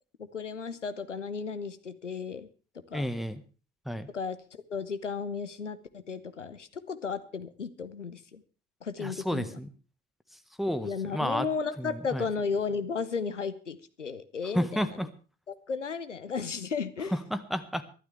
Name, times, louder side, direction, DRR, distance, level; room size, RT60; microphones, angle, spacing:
voice 1, 0.2-2.5 2.9-3.1 4.1-4.4 4.7-8.4 8.8-9.6 10.8-14.9 15.5-17.2, left 5 dB, 85° left, 12 dB, 0.8 m, -34 dB
voice 2, 2.9-3.4 3.8-4.1 9.0-9.7 10.6-11.5 11.8-12.3 14.5-15.1 17.1-17.8, equal, ahead, 10 dB, 1.4 m, -31 dB
22.5 x 12.0 x 3.4 m, 0.36 s
figure-of-eight pair, 50°, 36 cm